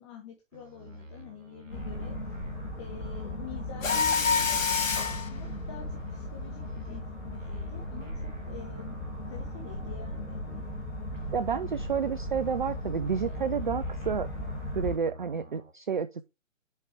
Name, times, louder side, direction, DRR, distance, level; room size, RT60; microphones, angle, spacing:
voice 1, 0.0-2.2 2.8-9.0 9.2-10.4, left 7 dB, 20° left, 1.0 m, -47 dB
sound 1, 0.5-4.8 5.1-10.8 11.1-15.7, right 1 dB, 75° right, 1.6 m, -48 dB
sound 2, 1.7-15.0, left 1 dB, 55° left, 4.0 m, -37 dB
Mechanisms, 3.8-5.3, left 5 dB, 85° left, 1.0 m, -26 dB
voice 2, 11.3-14.3 14.7-16.3, right 6 dB, 40° right, 0.4 m, -30 dB
7.2 x 5.0 x 3.3 m
figure-of-eight pair, 130°, 39 cm